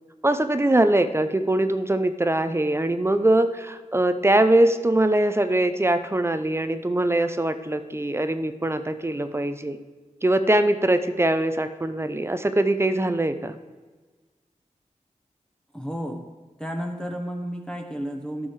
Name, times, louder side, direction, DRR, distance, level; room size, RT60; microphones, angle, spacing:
voice 1, 0.2-9.8 10.2-13.6, right 1 dB, 20° right, 10 dB, 0.5 m, -22 dB
voice 2, 15.7-16.3 16.6-18.5, equal, 5° left, 2 dB, 1.1 m, -32 dB
14.5 x 6.3 x 4.7 m, 1.3 s
wide cardioid pair, 95°, 13 cm